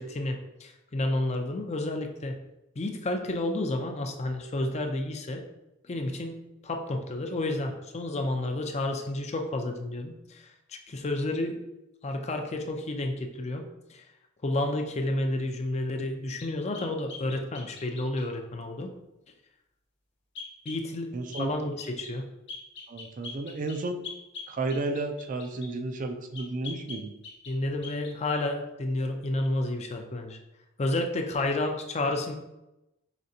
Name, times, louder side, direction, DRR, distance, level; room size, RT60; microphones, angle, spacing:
voice 1, 0.0-2.4 2.8-5.4 5.8-11.6 12.0-14.0 14.4-18.9 20.7-22.2 27.5-30.4 30.8-32.3, left 2 dB, 35° left, 4 dB, 0.5 m, -31 dB
sound 1, 16.4-18.3 20.3-20.8 21.3-21.5 21.8-22.2 22.5-25.7 26.3-27.6 27.8-28.1, left 4 dB, 60° left, 1.0 m, -43 dB
voice 2, 21.1-21.5 22.9-24.0 24.5-27.1, right 2 dB, 40° right, 6 dB, 0.4 m, -32 dB
5.1 x 3.3 x 2.7 m, 0.93 s
head